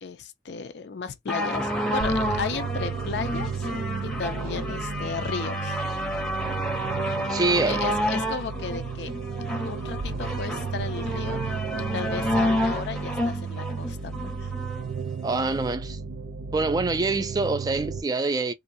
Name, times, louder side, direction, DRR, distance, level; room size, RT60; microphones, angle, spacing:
voice 1, 0.0-3.6 4.0-5.8 7.6-9.1 9.5-14.5, left 5 dB, 70° left, 0.4 m, -35 dB
sound 1, 1.3-14.8 15.6-15.7, equal, 5° left, 0.7 m, -30 dB
sound 2, 2.0-18.0, right 5 dB, 85° right, 0.5 m, -33 dB
voice 2, 7.3-7.8 15.2-16.0 16.5-18.5, right 3 dB, 20° right, 0.3 m, -25 dB
2.5 x 2.2 x 2.5 m
head